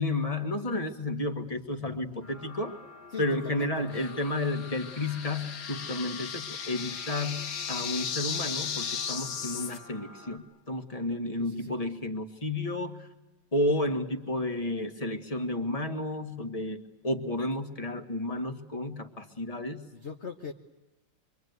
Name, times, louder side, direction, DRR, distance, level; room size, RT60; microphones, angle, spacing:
voice 1, 0.0-2.8 3.2-13.1 13.5-19.9, left 1 dB, 20° left, 7 dB, 1.8 m, -32 dB
voice 2, 1.7-2.3 3.1-4.1 11.4-11.8 19.9-20.5, left 5 dB, 40° left, 4 dB, 1.3 m, -42 dB
sound 1, 2.2-10.4, left 3 dB, 85° left, 5.6 m, -48 dB
sound 2, 3.9-9.8, left 7 dB, 65° left, 1.7 m, -36 dB
26.0 x 24.5 x 9.4 m, 1.0 s
omnidirectional pair, 2.0 m